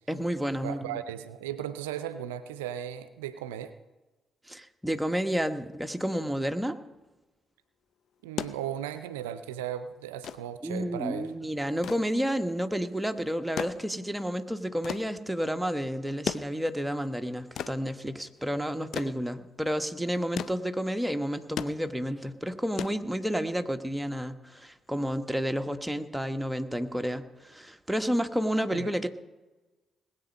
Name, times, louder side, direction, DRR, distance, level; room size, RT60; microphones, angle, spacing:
voice 1, 0.1-1.0 4.5-6.8 10.6-29.1, equal, 5° right, 7 dB, 1.2 m, -30 dB
voice 2, 0.6-3.7 8.2-11.3 28.7-28.9, right 10 dB, 80° right, 12 dB, 0.5 m, -36 dB
sound 1, 8.1-23.6 24.9-25.0, left 9 dB, 60° left, 0.5 m, -40 dB
20.0 x 8.2 x 5.4 m, 1.1 s
hypercardioid pair, 45°, 0 cm